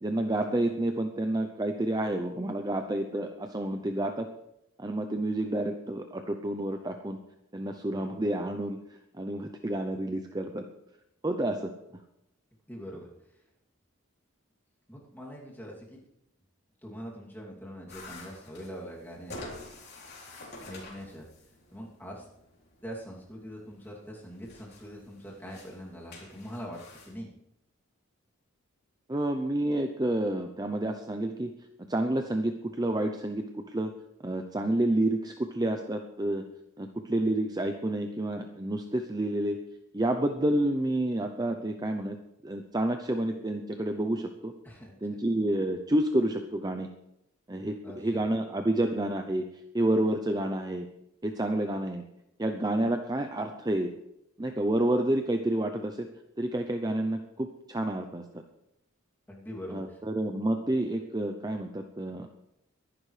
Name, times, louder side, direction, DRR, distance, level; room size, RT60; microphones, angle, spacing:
voice 1, 0.0-4.3 4.8-7.2 7.5-8.8 9.2-10.7 11.2-11.7 29.1-31.5 31.9-33.9 34.2-36.5 36.8-39.6 39.9-42.2 42.4-44.5 45.0-46.9 47.5-49.4 49.7-50.9 51.2-52.0 52.4-53.9 54.4-56.1 56.4-58.4 59.7-62.3, right 1 dB, 20° right, 5 dB, 0.6 m, -29 dB
voice 2, 12.7-13.3 14.9-16.0 16.8-19.4 20.6-21.3 21.7-22.3 22.8-27.3 44.6-45.0 47.8-48.2 59.3-60.0, equal, 10° left, -3 dB, 2.7 m, -43 dB
sound 1, 17.9-27.1, left 2 dB, 50° left, 3.6 m, -48 dB
22.5 x 11.0 x 3.3 m, 0.82 s
head